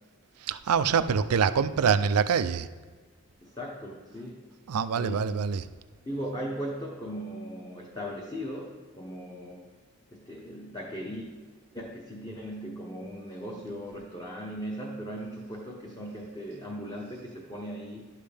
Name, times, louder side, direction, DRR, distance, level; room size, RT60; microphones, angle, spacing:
voice 1, 0.4-2.7 4.7-5.6, right 6 dB, 85° right, 0.4 m, -25 dB
voice 2, 3.4-4.4 4.9-5.3 6.1-9.7 10.1-11.3 11.7-18.1, equal, 20° left, 0.9 m, -38 dB
11.5 x 7.3 x 3.4 m
head